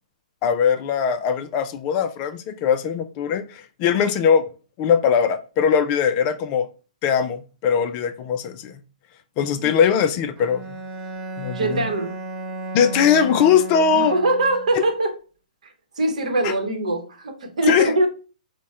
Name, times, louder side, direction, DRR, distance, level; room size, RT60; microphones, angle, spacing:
voice 1, 0.4-4.4 4.8-6.7 7.0-8.8 9.4-10.6 11.4-11.9 12.7-14.1 14.7-14.8 16.4-16.5 17.7-17.9, left 7 dB, 30° left, 0.4 m, -20 dB
Bowed string instrument, 10.4-14.8, right 2 dB, 25° right, 0.8 m, -34 dB
voice 2, 11.5-12.2 13.9-15.2 15.6-18.1, right 2 dB, 60° right, 0.9 m, -23 dB
4.0 x 2.2 x 3.5 m
figure-of-eight pair, 120°, 4 cm